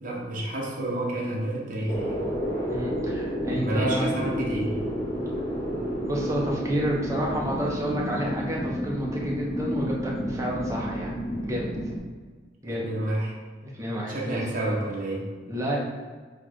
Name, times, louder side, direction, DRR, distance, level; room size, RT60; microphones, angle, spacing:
voice 1, 0.0-2.2 3.6-4.8 12.6-13.3 14.1-15.3, right 1 dB, 50° right, -4 dB, 1.0 m, -29 dB
sound 1, 1.9-12.0, equal, 20° left, 0.9 m, -30 dB
voice 2, 2.7-4.1 6.1-11.1 11.4-11.7 12.6-12.9 13.6-14.4 15.5-15.8, equal, 15° right, -4 dB, 0.8 m, -29 dB
4.4 x 2.4 x 4.4 m, 1.4 s
head